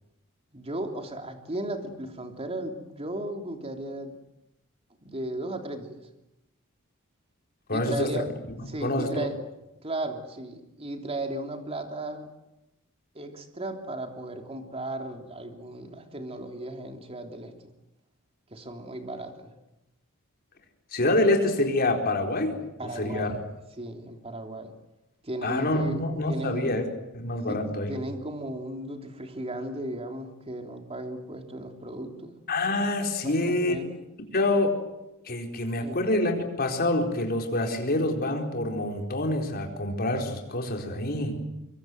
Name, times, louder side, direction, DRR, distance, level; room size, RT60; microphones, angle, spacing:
voice 1, 0.5-4.2 5.0-6.0 7.7-8.3 8.7-9.4 9.8-12.3 13.1-17.5 18.5-19.6 22.6-23.4 23.8-24.7 25.2-26.7 27.5-32.4 33.2-34.0 35.8-36.0, right 1 dB, 30° right, 4 dB, 3.3 m, -36 dB
voice 2, 7.7-8.2 8.6-9.3 20.9-22.6 23.0-23.3 25.4-26.8 27.1-27.9 32.5-33.8 34.3-34.8 35.3-41.4, left 2 dB, 45° left, 3 dB, 4.4 m, -26 dB
24.5 x 24.0 x 8.0 m, 0.93 s
head